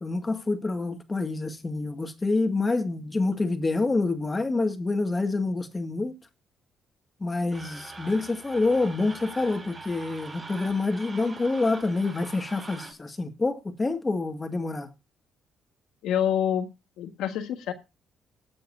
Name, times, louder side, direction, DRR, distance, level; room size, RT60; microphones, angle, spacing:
voice 1, 0.0-6.2 7.2-14.9, left 3 dB, 25° left, 2.0 m, -27 dB
sound 1, 7.5-12.9, right 3 dB, 20° right, 5.6 m, -43 dB
voice 2, 16.0-16.7 17.0-17.7, left 9 dB, 85° left, 1.6 m, -26 dB
19.5 x 7.7 x 2.7 m
cardioid pair, 90°, 0 cm